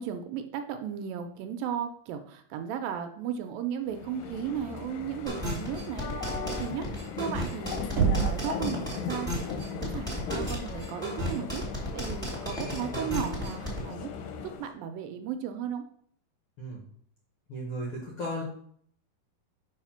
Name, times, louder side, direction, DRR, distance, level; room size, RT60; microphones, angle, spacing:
voice 1, 0.0-6.1 6.4-6.9 7.2-7.8 8.1-11.6 11.9-14.1 14.6-15.8, right 8 dB, 80° right, 7 dB, 2.2 m, -35 dB
sound 1, 3.9-14.7, left 6 dB, 80° left, 2.2 m, -38 dB
sound 2, 5.3-13.8, equal, ahead, 1.6 m, -34 dB
Knock, 8.0-8.6, right 7 dB, 60° right, 1.7 m, -25 dB
voice 2, 12.5-13.2 16.6-16.8 17.5-18.4, equal, 60° left, -3 dB, 1.5 m, -37 dB
5.7 x 4.7 x 5.6 m, 0.62 s
omnidirectional pair, 4.3 m